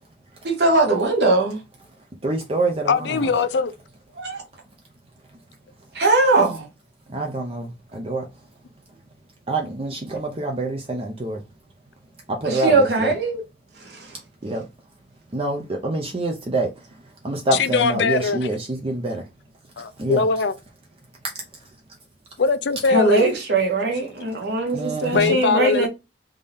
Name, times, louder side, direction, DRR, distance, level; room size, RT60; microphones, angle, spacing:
voice 1, 0.4-1.6 4.2-4.4 5.9-6.7 12.4-13.4 13.8-14.2 22.9-25.9, right 2 dB, 70° right, 1.3 m, -20 dB
voice 2, 2.2-3.3 7.1-8.3 9.5-11.4 12.3-13.1 14.4-14.6 15.3-16.7 17.2-19.2 20.0-20.2 24.7-25.4, right 2 dB, 30° right, 0.5 m, -26 dB
voice 3, 2.9-3.7 17.5-18.5 19.8-20.5 22.4-23.3 25.1-25.9, left 4 dB, 75° left, 0.5 m, -21 dB
3.6 x 2.7 x 3.4 m
head